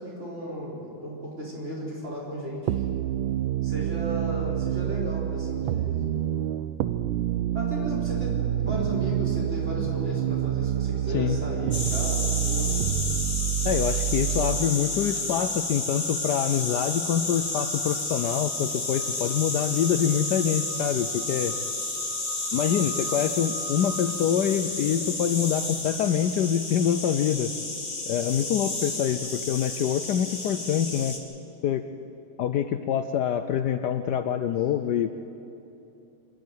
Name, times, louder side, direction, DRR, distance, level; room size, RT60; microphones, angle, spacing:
voice 1, 0.0-2.8 3.6-6.1 7.5-12.7 19.1-19.3 28.2-28.5, equal, 35° right, -4 dB, 4.9 m, -35 dB
sound 1, 2.7-14.7, right 11 dB, 85° right, 1.5 m, -27 dB
sound 2, 8.4-8.9 9.2-25.8, right 5 dB, 60° right, 2.6 m, -47 dB
sound 3, 11.7-31.2, left 2 dB, 25° left, 2.1 m, -31 dB
voice 2, 13.6-21.6 22.5-27.5 28.1-31.2 31.6-31.8 32.4-35.1, left 9 dB, 70° left, 9 dB, 1.1 m, -25 dB
25.5 x 11.5 x 9.3 m, 2.8 s
omnidirectional pair, 2.1 m